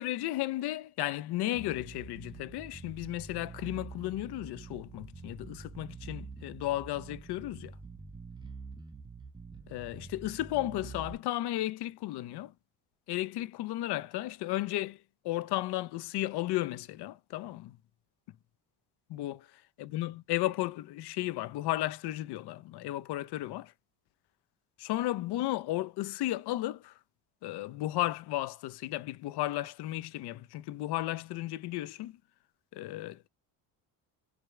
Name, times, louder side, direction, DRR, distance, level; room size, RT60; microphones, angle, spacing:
voice 1, 0.0-7.8 9.7-12.5 13.1-17.8 19.1-23.7 24.8-27.0 27.4-32.2 32.7-33.2, left 16 dB, 60° left, 0.5 m, -34 dB
Bass guitar, 1.5-11.1, right 4 dB, 10° right, 0.4 m, -46 dB
4.9 x 2.3 x 3.1 m
supercardioid pair, 75°, 45 cm